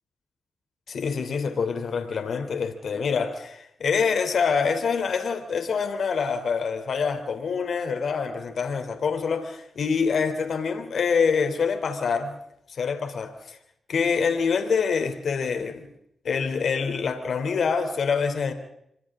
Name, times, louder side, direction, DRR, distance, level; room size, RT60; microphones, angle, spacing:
voice 1, 0.9-12.3 12.7-13.6 13.9-15.9 16.2-18.5, left 5 dB, 70° left, 3.3 m, -26 dB
28.0 x 25.0 x 3.8 m
supercardioid pair, 45°, 0 cm